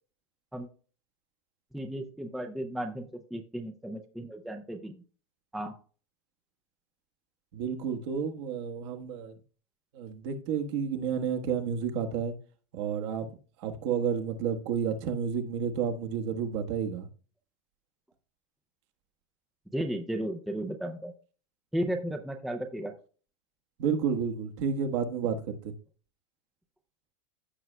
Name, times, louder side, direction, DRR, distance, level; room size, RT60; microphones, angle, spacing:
voice 1, 1.7-5.0 5.5-5.7 19.7-21.1 21.7-22.9, right 1 dB, ahead, 0.4 m, -34 dB
voice 2, 7.5-9.4 9.9-12.3 12.7-13.3 13.6-17.1 23.8-25.7, right 7 dB, 55° right, 1.3 m, -31 dB
15.0 x 6.1 x 2.2 m
supercardioid pair, 165°, 18 cm